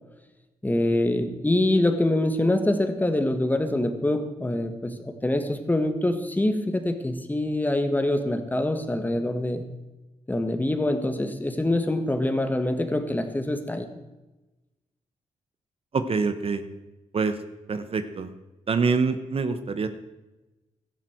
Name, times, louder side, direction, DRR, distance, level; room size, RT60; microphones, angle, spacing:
voice 1, 0.6-9.6 10.3-13.9, left 1 dB, 15° left, 7 dB, 1.7 m, -25 dB
voice 2, 15.9-16.6 17.1-17.4 17.7-18.3 18.7-19.9, right 4 dB, 45° right, 10 dB, 1.1 m, -25 dB
16.5 x 13.5 x 4.6 m, 1.1 s
cardioid pair, 105°, 13 cm